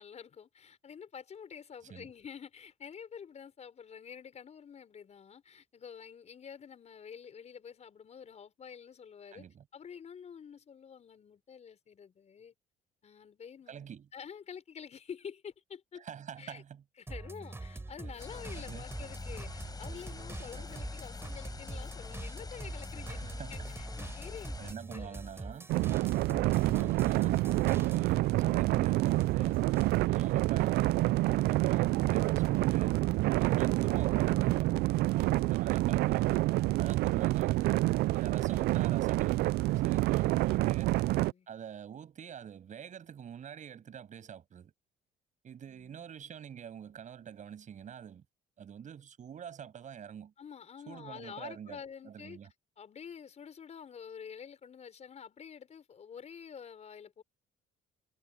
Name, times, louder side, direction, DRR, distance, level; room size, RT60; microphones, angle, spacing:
voice 1, 0.0-9.4 9.7-12.5 13.0-16.0 16.4-16.6 17.0-25.3 33.2-33.5 35.2-35.5 40.8-41.5 45.7-46.0 50.4-52.4 52.8-57.2, left 7 dB, 40° left, 6.2 m, -48 dB
voice 2, 9.3-9.6 13.7-14.1 16.0-16.8 18.5-18.8 20.5-20.8 23.1-23.7 24.6-25.7 26.4-27.4 27.7-29.6 29.9-30.9 31.3-33.0 33.4-34.7 35.1-36.4 36.8-37.7 38.1-39.5 39.8-40.9 41.5-44.7 45.4-48.2 48.6-50.3 50.9-52.5, right 8 dB, 45° right, 6.9 m, -46 dB
sound 1, 17.1-28.3 28.6-30.0, right 2 dB, 15° right, 3.7 m, -44 dB
sound 2, 18.2-24.7, left 4 dB, 25° left, 4.6 m, -44 dB
sound 3, 25.7-41.3, right 18 dB, 75° right, 0.4 m, -28 dB
cardioid pair, 110°, 17 cm